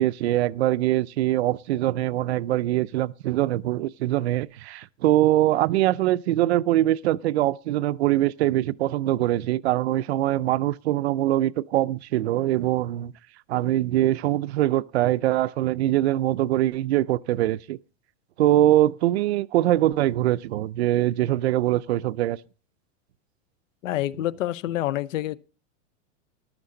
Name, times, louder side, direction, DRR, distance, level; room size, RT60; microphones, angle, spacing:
voice 1, 0.0-13.1 13.5-17.8 18.4-22.4, right 14 dB, 60° right, 0.5 m, -23 dB
voice 2, 23.8-25.4, left 14 dB, 75° left, 0.8 m, -27 dB
14.0 x 11.5 x 3.8 m
supercardioid pair, 180°, 38 cm